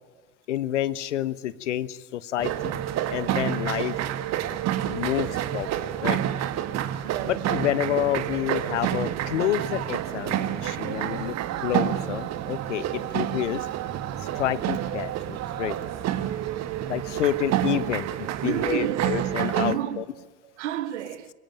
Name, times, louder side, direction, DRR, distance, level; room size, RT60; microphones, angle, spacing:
voice 1, 0.5-2.8 3.1-3.9 4.9-6.2 7.3-11.4 11.6-13.7 14.3-15.8 16.9-20.0, left 12 dB, 70° left, 17 dB, 1.2 m, -29 dB
sound 1, 2.4-19.8, right 11 dB, 45° right, 1.8 m, -29 dB
voice 2, 7.0-7.5 18.4-19.1 19.6-21.3, right 11 dB, 70° right, 15 dB, 1.5 m, -31 dB
24.5 x 23.5 x 9.1 m, 1.2 s
figure-of-eight pair, 65°, 36 cm